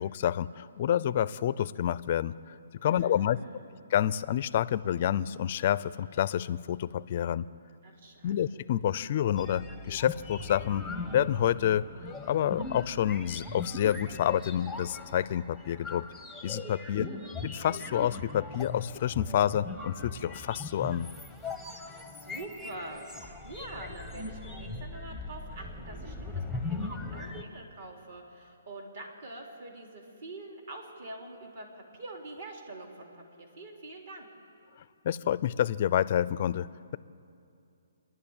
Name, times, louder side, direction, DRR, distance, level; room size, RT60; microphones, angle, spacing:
voice 1, 0.0-2.3 2.8-3.4 3.9-7.5 8.2-11.9 12.3-16.1 16.4-17.1 17.6-21.1 35.0-37.0, left 10 dB, 35° left, 17 dB, 0.4 m, -28 dB
voice 2, 2.8-3.7 7.8-8.5 16.9-17.2 21.8-34.3, right 2 dB, 50° right, 1 dB, 3.4 m, -45 dB
sound 1, 9.4-27.4, left 3 dB, 5° right, 0.9 m, -40 dB
27.5 x 11.0 x 8.8 m, 2.6 s
hypercardioid pair, 165°, 0 cm